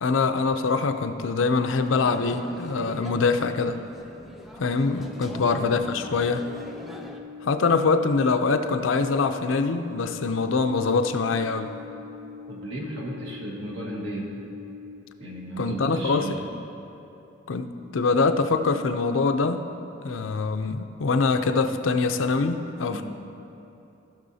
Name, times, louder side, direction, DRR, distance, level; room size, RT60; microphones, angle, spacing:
voice 1, 0.0-3.8 4.6-6.4 7.4-11.8 15.6-16.3 17.5-19.6 20.0-23.0, left 4 dB, 85° left, 8 dB, 0.5 m, -24 dB
sound 1, 1.9-7.2, equal, ahead, 0.4 m, -41 dB
sound 2, 4.9-14.9, left 5 dB, 55° right, 2.1 m, -42 dB
voice 2, 5.3-5.6 12.5-14.3 15.2-16.4 22.9-23.0, right 1 dB, 80° right, -3 dB, 1.6 m, -34 dB
16.0 x 6.3 x 2.7 m, 2.9 s
head